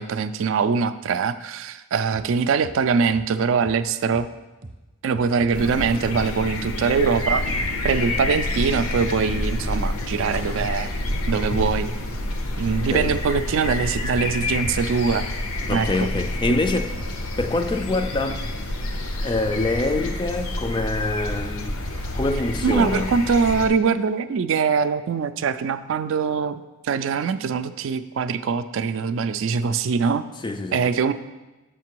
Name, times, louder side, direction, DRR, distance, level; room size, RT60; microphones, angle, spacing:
voice 1, 0.0-4.3 5.0-7.4 7.8-10.9 11.3-11.9 12.6-15.3 15.7-15.9 16.5-16.6 22.6-30.2 30.7-31.1, right 5 dB, 65° right, 0.3 m, -23 dB
sound 1, 2.1-2.3 2.6-2.8 3.1-3.3 3.6-3.8 4.1-4.3 4.6-4.8 5.1-5.8 6.1-6.3 6.6-6.8 7.1-7.3 7.6-7.8 8.1-8.3 8.6-9.8 10.1-10.3 10.6-10.8 11.1-11.3 11.6-11.8 12.1-12.3 12.6-12.8 13.1-13.8 14.1-14.3 14.6-14.8 15.1-15.3 15.6-15.8 16.1-16.3 16.6-17.5, right 1 dB, 45° right, 0.7 m, -39 dB
sound 2, 5.5-23.7, left 1 dB, 80° left, 0.8 m, -28 dB
voice 2, 15.7-16.9 17.4-18.4 19.2-21.7 22.1-23.1 30.4-30.8, left 2 dB, 20° left, 0.3 m, -25 dB
6.7 x 5.8 x 4.6 m
head